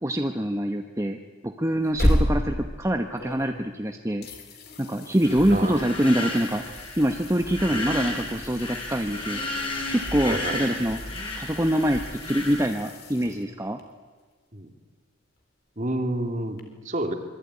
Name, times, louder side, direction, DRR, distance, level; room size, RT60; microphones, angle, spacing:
voice 1, 0.0-4.3 4.8-6.6 7.0-9.4 9.9-11.0 11.4-13.8, equal, 15° right, 4 dB, 1.0 m, -25 dB
sound 1, 1.7-3.8 4.2-13.8 16.6-16.7, equal, 50° left, 3.8 m, -32 dB
sound 2, 5.2-12.7, left 1 dB, 25° left, 5.5 m, -33 dB
voice 2, 5.5-5.9 7.7-7.9 10.2-10.6 14.5-14.7 15.8-17.1, right 1 dB, 35° right, 5 dB, 2.8 m, -29 dB
26.5 x 22.5 x 9.7 m, 1.5 s
head